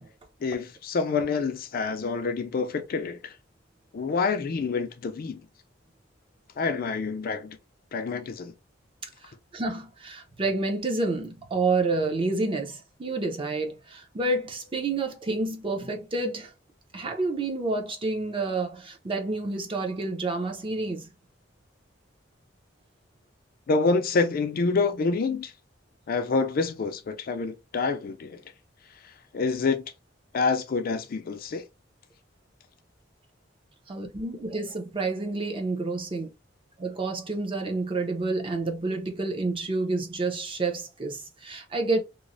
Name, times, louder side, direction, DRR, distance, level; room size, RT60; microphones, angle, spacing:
voice 1, 0.4-3.3 3.9-5.4 6.6-7.6 7.9-8.5 23.7-25.5 26.1-28.4 29.3-29.8 30.3-31.6, left 4 dB, 50° left, 0.4 m, -27 dB
voice 2, 9.0-16.5 16.9-21.1 33.9-36.3 36.8-42.0, right 3 dB, 30° right, 0.5 m, -29 dB
3.0 x 2.0 x 2.5 m
head